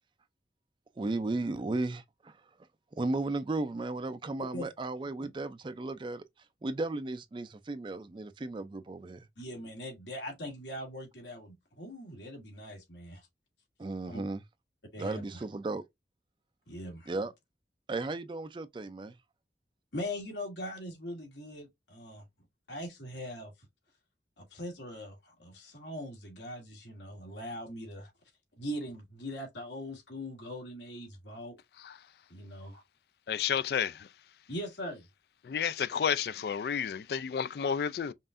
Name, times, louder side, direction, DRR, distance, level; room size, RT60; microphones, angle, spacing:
voice 1, 1.0-2.4 2.9-6.2 6.6-9.3 13.8-14.4 15.0-15.8 17.1-17.3 17.9-19.2, right 2 dB, 25° right, 0.4 m, -35 dB
voice 2, 9.4-13.3 14.1-14.2 14.9-15.4 16.7-17.1 19.9-22.2 22.7-23.5 24.4-28.1 28.6-31.6 32.3-32.8 34.5-35.0, left 1 dB, 90° left, 2.1 m, -41 dB
voice 3, 33.3-33.9 35.5-38.1, left 7 dB, 60° left, 0.3 m, -31 dB
5.4 x 2.5 x 2.5 m
head